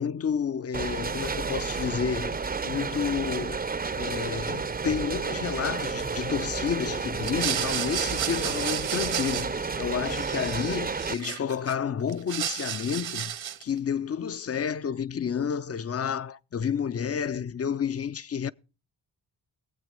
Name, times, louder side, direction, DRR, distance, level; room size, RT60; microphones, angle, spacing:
voice 1, 0.0-3.6 4.0-18.5, left 7 dB, 35° left, 0.6 m, -30 dB
sound 1, 0.7-11.1, right 4 dB, 20° right, 0.6 m, -31 dB
sound 2, 7.2-9.8 10.1-11.7 12.1-13.7, right 10 dB, 80° right, 1.4 m, -32 dB
18.5 x 8.0 x 5.2 m
cardioid pair, 70°, 45 cm